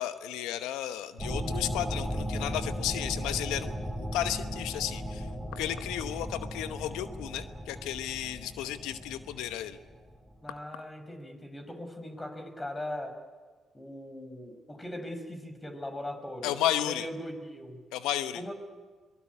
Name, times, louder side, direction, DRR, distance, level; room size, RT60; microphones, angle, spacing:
voice 1, 0.0-5.3 5.6-9.8 16.4-17.1 17.9-18.4, left 12 dB, 80° left, 12 dB, 0.9 m, -33 dB
sound 1, 1.2-10.3, equal, 5° right, 5.4 m, -36 dB
voice 2, 10.4-13.2 13.7-16.5 16.8-17.8 18.4-18.5, left 1 dB, 20° left, 6 dB, 5.8 m, -39 dB
23.5 x 19.5 x 9.7 m, 1.4 s
hypercardioid pair, 55°, 0 cm